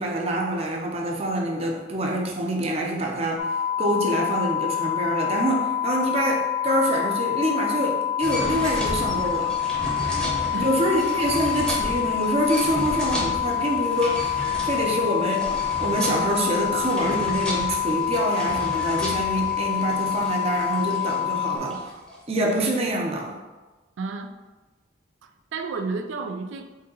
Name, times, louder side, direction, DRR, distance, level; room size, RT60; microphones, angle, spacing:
voice 1, 0.0-9.6 10.2-14.3 14.6-21.8 22.3-23.4, right 1 dB, 30° right, 0 dB, 0.6 m, -26 dB
sound 1, 3.4-21.6, left 10 dB, 45° left, 0.3 m, -27 dB
sound 2, 8.2-22.2, equal, 5° left, 0.7 m, -34 dB
voice 2, 24.0-24.3 25.2-26.6, right 4 dB, 80° right, 6 dB, 0.4 m, -31 dB
4.0 x 2.8 x 3.8 m, 1.2 s
head